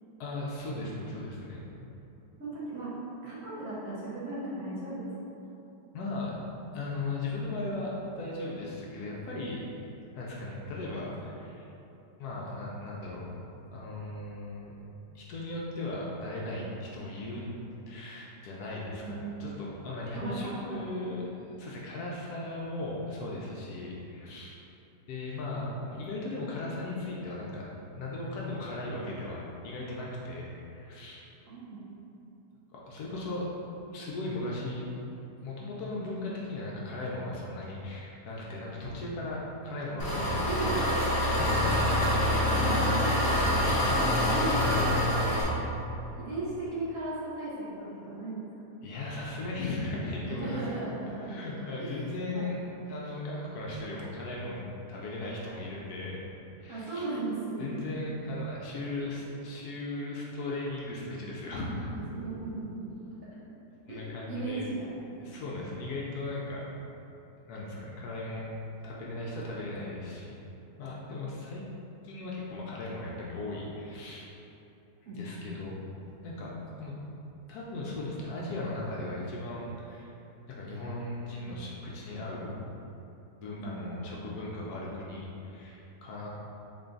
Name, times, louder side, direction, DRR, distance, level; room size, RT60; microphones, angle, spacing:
voice 1, 0.2-1.6 5.9-6.3 6.7-9.6 10.1-11.7 12.2-13.2 13.7-14.7 15.1-17.5 17.9-21.2 21.6-24.6 25.1-27.6 27.9-31.2 32.7-33.5 33.9-34.9 35.4-40.5 41.2-42.7 43.0-43.9 44.4-45.3 48.8-50.8 51.2-54.6 54.9-56.2 56.6-57.1 57.6-62.0 63.8-64.6 65.1-66.6 67.5-68.5 68.8-70.3 70.8-71.6 72.0-74.3 75.1-75.7 76.2-76.5 76.8-76.9 77.5-80.1 80.5-82.5 83.4-86.3, left 2 dB, 70° left, -4 dB, 1.0 m, -37 dB
voice 2, 2.4-2.9 3.2-5.1 19.0-19.3 20.1-20.5 31.5-31.8 40.2-41.1 42.5-43.1 43.9-44.9 46.1-48.5 50.2-51.4 51.8-52.5 56.7-57.8 62.1-62.9 63.9-64.0 64.3-64.9 71.0-71.3 75.1-75.5 83.6-84.0, right 2 dB, 55° right, -9 dB, 1.1 m, -36 dB
Engine, 40.0-45.4, left 1 dB, 50° left, 1.0 m, -26 dB
3.8 x 2.3 x 3.8 m, 3.0 s
omnidirectional pair, 1.8 m